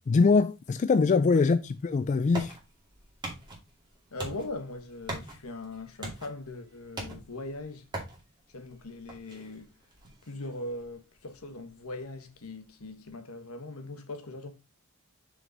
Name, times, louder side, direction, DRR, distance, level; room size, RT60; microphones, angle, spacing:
voice 1, 0.0-2.6, left 4 dB, 35° left, 0.3 m, -23 dB
sound 1, 1.6-13.1, right 2 dB, 20° right, 2.5 m, -44 dB
voice 2, 4.1-7.9 8.5-9.7 10.2-14.5, left 2 dB, 70° left, 1.3 m, -40 dB
6.0 x 5.3 x 4.0 m
head